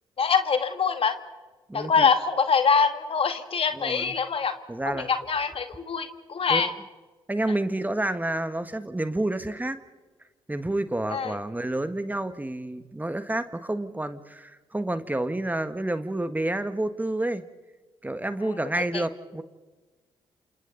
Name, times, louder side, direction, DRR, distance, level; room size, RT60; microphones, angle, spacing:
voice 1, 0.2-1.2 1.7-4.5 4.9-6.7 11.1-11.4 18.9-19.0, left 5 dB, 50° left, 8 dB, 2.0 m, -24 dB
voice 2, 1.7-2.1 3.7-4.1 4.7-5.1 6.5-6.7 7.3-9.8 10.5-17.4 18.0-19.4, right 1 dB, 15° right, 10 dB, 1.6 m, -29 dB
28.0 x 27.5 x 4.1 m, 1.3 s
hypercardioid pair, 50°, 12 cm